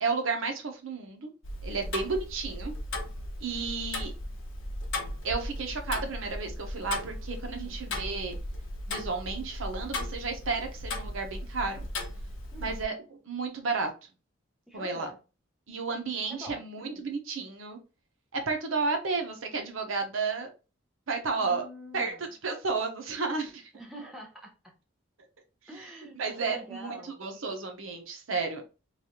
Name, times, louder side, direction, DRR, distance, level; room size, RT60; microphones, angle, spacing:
voice 1, 0.0-1.3 1.6-2.7 3.4-4.1 5.2-8.4 8.9-11.9 12.6-12.9 13.3-13.9 14.7-15.1 15.7-17.8 18.3-20.5 21.1-21.7 21.9-23.7 26.2-28.6, right 4 dB, 80° right, 4 dB, 0.8 m, -32 dB
Tick-tock, 1.4-12.8, left 1 dB, 80° left, 0.7 m, -37 dB
voice 2, 7.5-7.8 12.5-12.8 14.7-15.2 16.3-16.6 21.4-22.3 23.7-24.7 25.7-27.1, right 1 dB, ahead, 0 dB, 0.6 m, -45 dB
3.1 x 2.4 x 2.8 m, 0.32 s
head